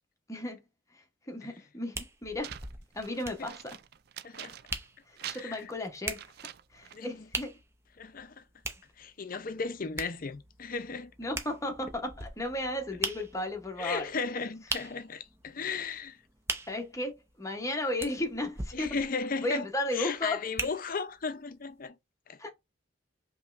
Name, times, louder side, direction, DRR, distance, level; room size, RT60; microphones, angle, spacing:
voice 1, 0.3-0.6 0.9-2.5 2.9-3.8 5.1-6.2 6.7-7.5 11.2-14.1 16.7-19.0 19.4-20.4 22.4-22.5, left 1 dB, 15° left, 0.9 m, -34 dB
sound 1, 1.9-21.2 21.8-21.9, right 3 dB, 15° right, 0.6 m, -41 dB
sound 2, 2.4-4.9 5.2-7.1, right 11 dB, 50° right, 0.3 m, -45 dB
voice 2, 4.2-4.6 5.3-5.6 6.9-7.1 8.0-8.4 9.0-11.1 13.8-16.2 18.7-19.6 19.9-22.0 22.3-22.4, left 4 dB, 45° left, 0.6 m, -35 dB
5.2 x 3.0 x 2.5 m
head